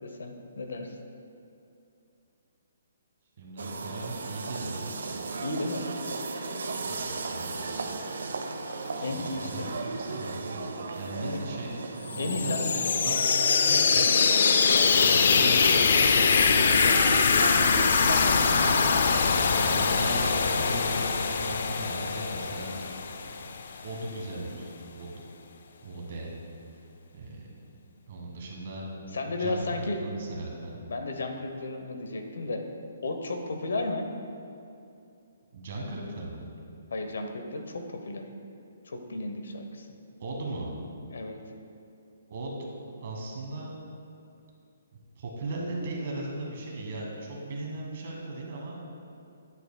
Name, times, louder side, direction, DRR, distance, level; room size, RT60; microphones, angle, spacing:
voice 1, 0.0-0.9 5.4-5.9 9.0-9.7 11.2-11.4 12.2-12.9 14.6-15.8 16.3-17.2 29.1-30.0 30.9-32.6 33.0-34.1 36.9-38.3 38.8-39.9 41.1-41.4, left 2 dB, 75° left, 5 dB, 0.8 m, -34 dB
voice 2, 3.4-4.9 6.8-7.6 9.0-14.1 15.0-15.9 18.5-18.9 19.4-21.1 21.4-22.8 23.8-25.2 25.8-26.3 27.1-27.5 28.1-29.6 30.0-30.8 35.5-36.5 40.2-40.8 42.3-42.7 43.0-43.7 45.2-48.8, right 2 dB, 35° right, -2 dB, 1.3 m, -38 dB
sound 1, 3.6-20.3, right 3 dB, 70° right, 0.6 m, -36 dB
sound 2, 12.1-23.8, left 5 dB, 45° left, 0.3 m, -23 dB
9.7 x 8.0 x 2.2 m, 2.6 s
hypercardioid pair, 180°, 0 cm